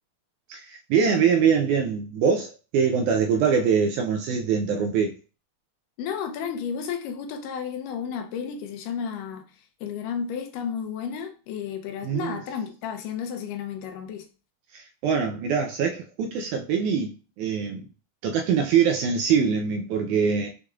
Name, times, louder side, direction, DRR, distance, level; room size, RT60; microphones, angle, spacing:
voice 1, 0.5-5.1 12.0-12.4 14.7-17.9 18.2-20.5, right 6 dB, 80° right, 1.8 m, -23 dB
voice 2, 6.0-14.3, left 7 dB, 80° left, 2.2 m, -32 dB
6.4 x 3.3 x 2.3 m
omnidirectional pair, 3.8 m